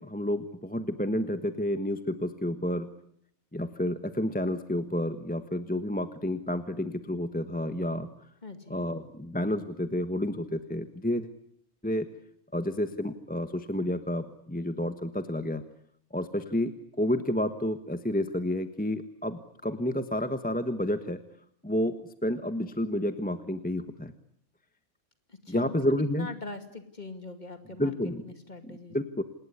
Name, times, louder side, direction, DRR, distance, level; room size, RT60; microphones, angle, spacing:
voice 1, 0.0-2.9 3.5-8.1 8.7-11.3 11.8-12.1 12.5-15.6 16.1-21.2 21.6-22.0 22.2-24.1 25.5-26.3 27.8-28.2 28.7-29.2, left 1 dB, 5° left, 9 dB, 1.2 m, -30 dB
voice 2, 8.4-8.8 25.3-28.0 28.2-29.1, left 3 dB, 35° left, 8 dB, 2.6 m, -42 dB
27.5 x 20.0 x 9.9 m, 0.70 s
omnidirectional pair, 1.3 m